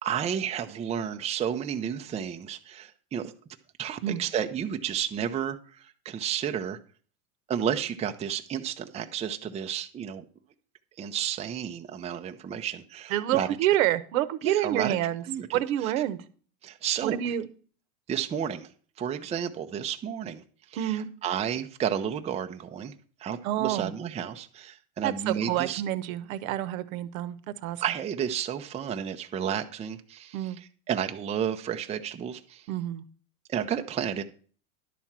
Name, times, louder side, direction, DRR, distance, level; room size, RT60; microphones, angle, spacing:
voice 1, 0.0-3.3 3.8-6.8 7.5-10.2 11.0-13.5 14.4-15.0 15.2-15.9 16.6-17.4 18.1-18.7 19.0-20.4 20.7-22.9 23.2-25.8 27.8-32.6 33.5-34.2, right 8 dB, 15° right, 5 dB, 0.5 m, -32 dB
voice 2, 13.1-15.2 15.5-16.2 17.0-17.5 20.8-21.1 23.4-23.9 25.0-27.4 27.6-27.8 30.3-30.6 32.7-33.0, right 13 dB, 75° right, 14 dB, 1.0 m, -28 dB
11.0 x 4.4 x 7.3 m, 0.43 s
supercardioid pair, 125°, 42 cm